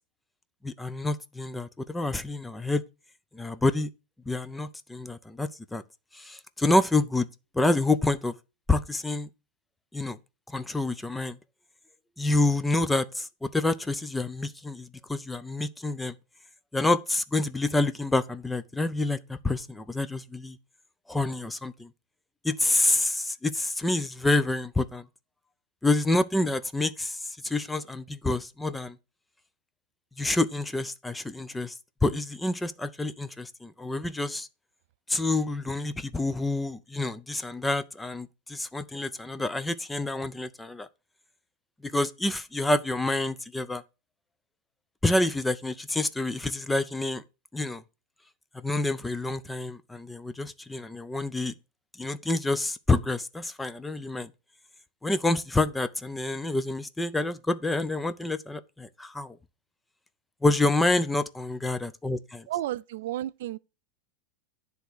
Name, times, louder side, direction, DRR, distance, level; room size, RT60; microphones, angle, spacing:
voice 1, 0.6-2.8 3.3-3.9 4.3-5.8 6.1-7.3 7.5-8.3 8.7-9.3 9.9-10.2 10.5-11.4 12.2-16.1 16.7-20.6 21.1-21.9 22.4-25.0 25.8-27.2 27.4-29.0 30.2-31.7 32.0-34.5 35.1-40.9 41.8-43.8 45.0-47.2 47.5-47.8 48.5-51.5 52.0-54.3 55.0-59.4 60.4-62.4, left 2 dB, 5° left, 0.4 m, -28 dB
voice 2, 62.5-63.6, right 13 dB, 70° right, 0.3 m, -32 dB
10.0 x 3.5 x 6.3 m
supercardioid pair, 165°, 0 cm